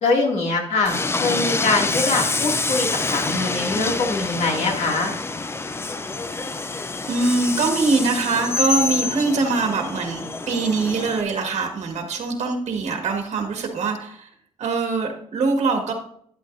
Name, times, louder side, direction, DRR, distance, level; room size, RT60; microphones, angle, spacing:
voice 1, 0.0-5.1, left 3 dB, 80° left, 0 dB, 2.3 m, -23 dB
Train, 0.8-11.2, left 3 dB, 20° left, 0.5 m, -27 dB
voice 2, 7.0-14.3 14.6-15.9, right 3 dB, 85° right, 3 dB, 1.6 m, -23 dB
12.0 x 9.7 x 2.6 m, 0.66 s
wide cardioid pair, 145°, 12 cm